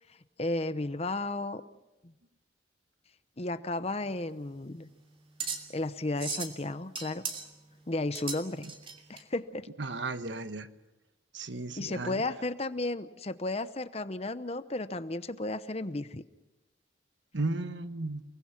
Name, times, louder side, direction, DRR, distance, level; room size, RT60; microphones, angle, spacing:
voice 1, 0.4-1.6 3.4-4.9 5.7-7.2 7.9-8.7 9.1-9.7 11.8-16.2, left 2 dB, 35° left, 13 dB, 0.8 m, -33 dB
sound 1, 4.0-9.2, right 5 dB, 30° right, 2.9 m, -39 dB
voice 2, 9.8-10.7 11.3-12.2 17.3-18.2, right 2 dB, 70° right, 10 dB, 1.3 m, -34 dB
30.0 x 20.5 x 5.9 m, 1.0 s
head